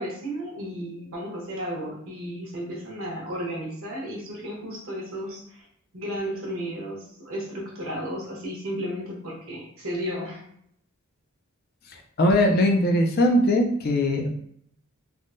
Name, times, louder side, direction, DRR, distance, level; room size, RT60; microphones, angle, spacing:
voice 1, 0.0-5.7 5.9-10.4, equal, 65° right, -3 dB, 1.1 m, -33 dB
voice 2, 12.2-14.3, left 1 dB, 45° left, 2 dB, 0.4 m, -20 dB
3.4 x 2.2 x 2.6 m, 0.69 s
head